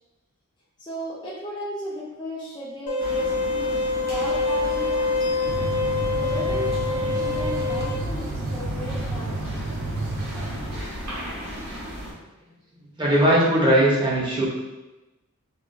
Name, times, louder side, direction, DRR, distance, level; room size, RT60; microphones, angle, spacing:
voice 1, 0.8-5.4 6.2-9.4 10.3-10.5, equal, 20° left, -7 dB, 0.5 m, -35 dB
sound 1, 2.9-7.9, left 3 dB, 80° left, 0.7 m, -25 dB
sound 2, 3.0-12.1, equal, 50° right, 1.0 m, -36 dB
sound 3, 5.5-10.8, right 2 dB, 75° right, 0.4 m, -30 dB
voice 2, 13.0-14.5, right 1 dB, 20° right, -6 dB, 0.7 m, -19 dB
3.8 x 2.4 x 2.3 m, 1.0 s
head